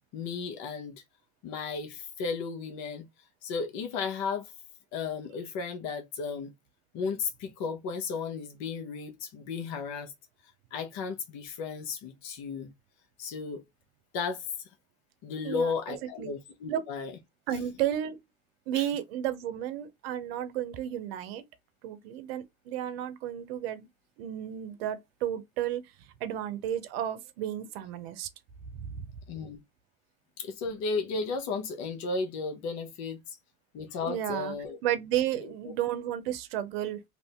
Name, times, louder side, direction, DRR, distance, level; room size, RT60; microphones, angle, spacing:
voice 1, 0.1-1.0 1.4-3.1 3.4-4.5 4.9-6.5 6.9-10.1 10.7-12.7 13.2-13.6 14.1-14.5 15.2-17.1 18.7-18.8 29.3-29.6 30.4-33.2 33.7-34.8 35.4-35.5, left 5 dB, 70° left, 0.9 m, -34 dB
voice 2, 15.4-16.3 16.7-16.8 17.5-18.2 18.7-21.4 21.8-23.9 24.2-25.8 26.2-28.3 28.7-29.1 34.1-34.5 34.8-37.0, right 11 dB, 80° right, 0.6 m, -32 dB
2.7 x 2.6 x 3.4 m
hypercardioid pair, 75°, 29 cm